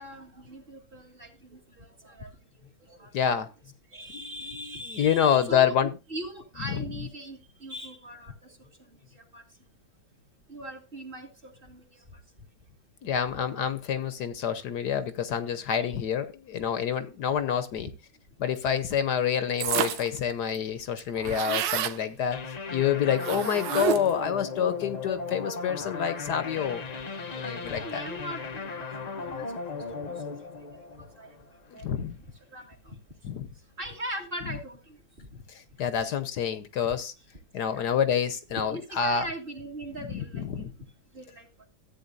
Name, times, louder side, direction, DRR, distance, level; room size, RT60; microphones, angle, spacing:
voice 1, 0.0-2.3 2.6-3.1 3.9-5.8 6.1-8.7 9.1-9.4 10.5-12.0 15.7-15.9 17.8-17.9 21.2-21.3 27.7-29.5 30.0-30.1 31.0-31.3 31.7-31.9 32.2-32.3 32.5-33.0 33.8-35.4 37.7-37.9 38.7-40.8 41.1-41.5, right 1 dB, 30° right, 2 dB, 1.9 m, -41 dB
voice 2, 3.1-3.5 4.1-5.9 6.7-6.9 13.0-17.9 18.4-26.9 27.3-28.0 31.7-32.2 33.2-33.5 35.5-37.1 37.5-39.3 40.1-40.7, left 8 dB, 70° left, 12 dB, 1.4 m, -28 dB
sound 1, 19.6-20.2 20.5-20.6 20.8-22.0 23.2-24.2, right 9 dB, 90° right, 1.4 m, -29 dB
sound 2, 22.3-31.7, left 4 dB, 45° left, 0.5 m, -37 dB
14.0 x 8.7 x 2.5 m, 0.28 s
omnidirectional pair, 1.9 m